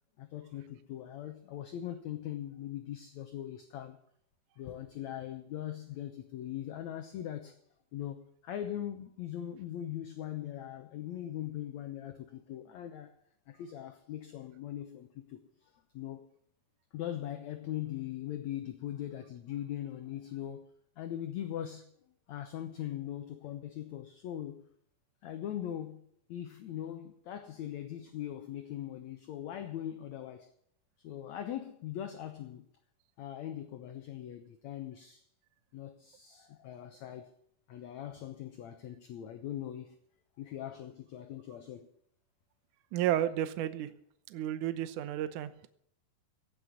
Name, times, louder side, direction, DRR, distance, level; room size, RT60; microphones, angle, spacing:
voice 1, 0.2-4.0 4.6-7.6 7.9-13.1 13.5-16.3 16.9-21.9 22.3-24.6 25.2-26.0 26.3-30.5 31.0-32.7 33.2-35.2 35.7-37.3 37.7-40.0 40.4-41.9, left 11 dB, 70° left, 1.9 m, -41 dB
voice 2, 42.9-43.9 44.3-45.7, right 12 dB, 70° right, 2.1 m, -32 dB
17.0 x 6.8 x 9.7 m
omnidirectional pair, 4.2 m